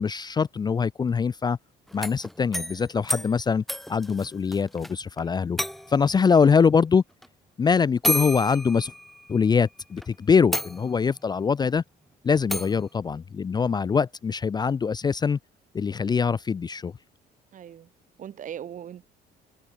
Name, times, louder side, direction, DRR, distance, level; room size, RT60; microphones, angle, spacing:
voice 1, 0.0-1.6 1.9-3.6 3.9-5.6 5.9-7.0 7.6-8.9 9.3-11.8 12.2-15.4 15.7-16.9, left 6 dB, 25° left, 0.5 m, -23 dB
sound 1, 1.9-4.9 5.2-5.3 5.6-6.1 7.2-7.3 8.0-9.5 10.0-10.1 10.5-11.2 12.5-12.8, equal, ahead, 0.8 m, -31 dB
voice 2, 17.5-17.9 18.2-19.0, right 9 dB, 50° right, 1.9 m, -41 dB
cardioid pair, 110°, 17 cm